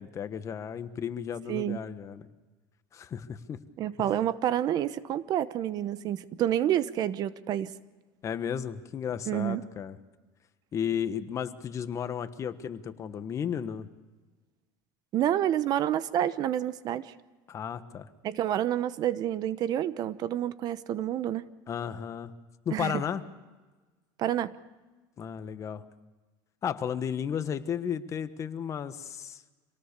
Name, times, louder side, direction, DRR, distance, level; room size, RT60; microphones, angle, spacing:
voice 1, 0.0-2.3 2.9-3.6 4.0-4.1 8.2-10.0 10.7-13.9 17.5-18.1 21.7-22.3 22.6-23.2 25.2-25.8 26.6-29.4, left 8 dB, 35° left, 11 dB, 1.3 m, -34 dB
voice 2, 1.5-1.8 3.8-7.7 9.3-9.6 15.1-17.1 18.2-21.4 22.7-23.0 24.2-24.5, right 11 dB, 45° right, 15 dB, 0.9 m, -28 dB
26.5 x 18.5 x 6.8 m, 1.2 s
supercardioid pair, 125°, 9 cm